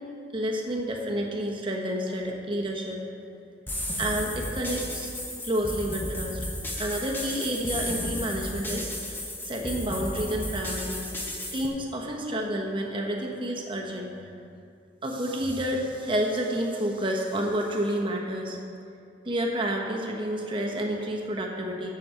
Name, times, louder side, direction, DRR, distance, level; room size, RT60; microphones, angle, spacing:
voice 1, 0.3-3.0 4.0-5.1 5.4-6.4 6.8-8.9 9.4-11.1 11.5-14.1 15.0-18.6 19.2-21.9, equal, 30° right, 0 dB, 1.2 m, -29 dB
sound 1, 3.7-11.7, left 1 dB, 10° left, 1.0 m, -34 dB
7.3 x 7.1 x 7.7 m, 2.5 s
head